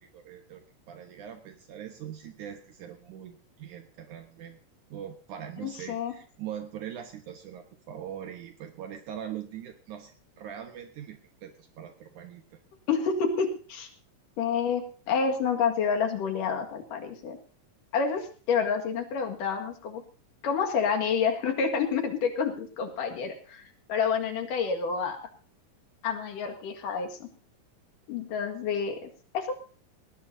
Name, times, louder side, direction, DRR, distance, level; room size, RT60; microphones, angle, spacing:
voice 1, 0.0-4.6 4.9-12.6, right 9 dB, 70° right, 5 dB, 2.5 m, -42 dB
voice 2, 5.6-6.1 12.9-13.9 14.4-17.4 17.9-20.0 20.4-23.6 23.9-25.2 26.0-27.3 28.1-29.5, left 6 dB, 75° left, 5 dB, 3.5 m, -28 dB
19.5 x 19.0 x 2.7 m, 0.39 s
omnidirectional pair, 3.8 m